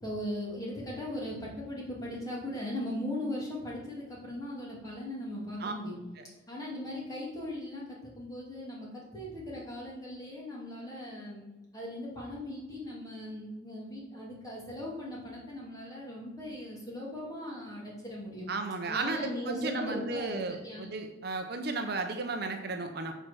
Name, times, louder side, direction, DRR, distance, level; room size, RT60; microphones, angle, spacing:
voice 1, 0.0-6.0 6.5-11.4 11.7-18.5 18.9-20.9, left 1 dB, 20° left, -4 dB, 2.3 m, -39 dB
voice 2, 18.5-23.1, right 3 dB, 50° right, 5 dB, 0.7 m, -34 dB
6.4 x 4.5 x 6.2 m, 1.1 s
head